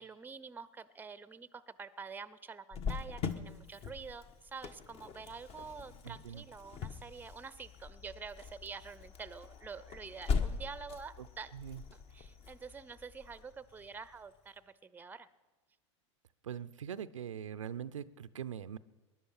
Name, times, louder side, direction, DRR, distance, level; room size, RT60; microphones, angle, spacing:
voice 1, 0.0-11.5 11.9-15.3, right 5 dB, 10° right, 17 dB, 0.6 m, -47 dB
Cricket, 2.7-14.2, left 5 dB, 40° left, 1.3 m, -41 dB
voice 2, 6.0-6.4 11.2-11.3 11.5-11.8 16.4-18.8, right 9 dB, 90° right, 14 dB, 0.6 m, -42 dB
20.0 x 11.0 x 5.6 m, 1.2 s
hypercardioid pair, 95°, 16 cm